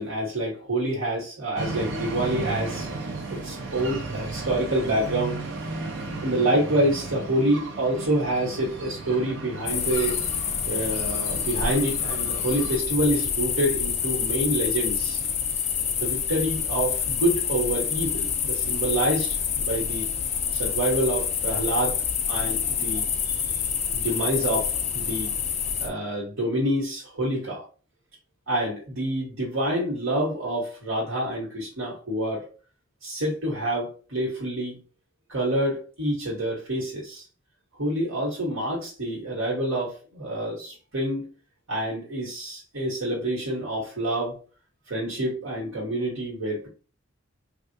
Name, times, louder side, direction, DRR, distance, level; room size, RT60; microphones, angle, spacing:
voice 1, 0.0-2.9 3.3-5.4 6.2-10.2 10.7-15.2 16.0-20.1 20.5-23.4 23.9-25.3 25.8-27.6 28.5-32.5 33.0-34.8 35.3-37.2 37.8-41.3 41.7-44.4 44.9-46.7, right 1 dB, 75° right, -6 dB, 1.3 m, -27 dB
sound 1, 1.6-12.8, right 3 dB, 60° right, 0.6 m, -35 dB
sound 2, 9.7-25.9, left 7 dB, 30° left, 0.3 m, -27 dB
3.5 x 2.4 x 2.7 m, 0.37 s
head